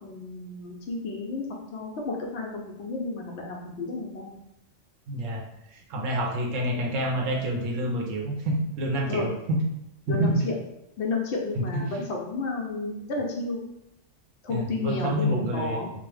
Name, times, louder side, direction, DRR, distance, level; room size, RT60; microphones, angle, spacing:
voice 1, 0.0-1.5 1.7-4.4 9.1-9.3 10.1-10.5 11.0-13.6 14.4-15.9, left 3 dB, 65° left, -1 dB, 0.8 m, -31 dB
voice 2, 5.1-5.4 5.7-9.6 10.1-10.4 11.6-11.7 14.5-15.8, right 1 dB, 85° right, 0 dB, 1.0 m, -28 dB
2.9 x 2.0 x 3.2 m, 0.82 s
omnidirectional pair, 1.3 m